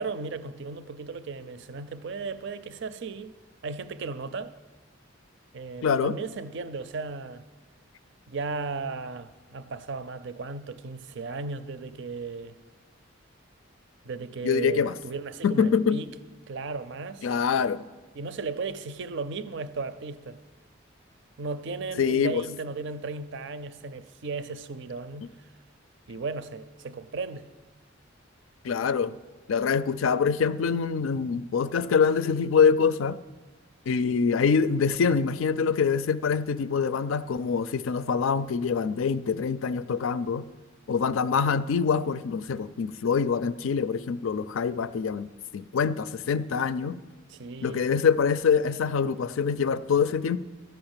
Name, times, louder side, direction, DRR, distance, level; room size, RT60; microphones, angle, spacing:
voice 1, 0.0-3.3 3.6-4.5 5.5-7.4 8.3-12.6 14.0-16.1 16.5-17.3 18.1-20.4 21.4-25.3 26.1-27.5 47.3-47.8, right 4 dB, 60° right, 0.5 m, -35 dB
voice 2, 5.8-6.1 14.4-14.9 15.4-16.0 17.2-17.8 22.0-22.4 28.6-29.2 29.5-33.2 33.9-40.4 40.9-47.0 47.6-50.4, left 6 dB, 75° left, 0.4 m, -25 dB
13.5 x 5.7 x 8.9 m
head